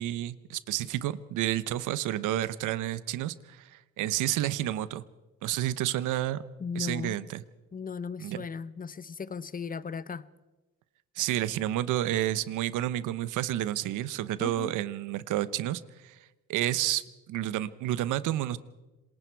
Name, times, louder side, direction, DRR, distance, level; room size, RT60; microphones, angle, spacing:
voice 1, 0.0-5.0 5.4-6.4 6.7-7.4 8.2-8.5 11.2-16.2 16.5-18.6, right 13 dB, 90° right, 1.0 m, -30 dB
voice 2, 6.6-7.3 7.7-10.3 14.4-14.7, left 5 dB, 30° left, 0.9 m, -37 dB
27.0 x 20.5 x 4.7 m
cardioid pair, 90°, 30 cm